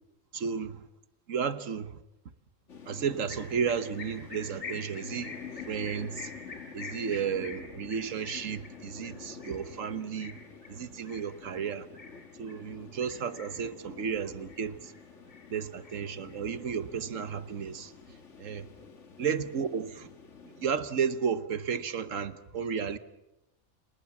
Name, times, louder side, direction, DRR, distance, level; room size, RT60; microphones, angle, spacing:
voice 1, 0.3-0.8 1.3-2.0 2.9-5.4 5.7-6.3 6.7-10.4 10.7-11.9 12.4-14.9 15.5-17.9 18.4-18.7 19.2-20.1 20.6-23.0, right 7 dB, 75° right, 1.5 m, -33 dB
sound 1, 2.7-20.7, left 6 dB, 65° left, 2.1 m, -48 dB
sound 2, 3.3-12.6 13.0-13.7 14.1-15.0 15.3-16.6, left 4 dB, 45° left, 4.5 m, -47 dB
29.5 x 19.0 x 7.2 m
omnidirectional pair, 1.4 m